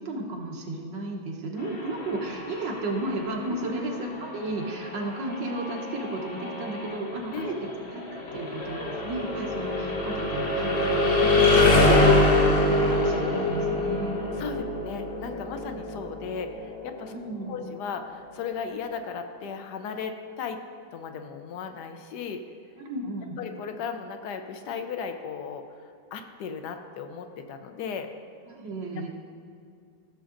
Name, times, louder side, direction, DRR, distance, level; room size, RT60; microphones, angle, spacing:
voice 1, 0.1-7.5 7.9-12.6 12.9-14.3 17.1-17.7 22.8-23.4 28.5-29.1, right 2 dB, 85° right, 0 dB, 1.8 m, -33 dB
sound 1, 1.6-17.4, left 2 dB, 45° left, 1.1 m, -25 dB
voice 2, 14.4-17.1 17.5-20.6 20.9-22.4 23.4-28.1, left 6 dB, 70° left, 7 dB, 1.2 m, -36 dB
15.0 x 6.9 x 2.5 m, 2.4 s
omnidirectional pair, 1.9 m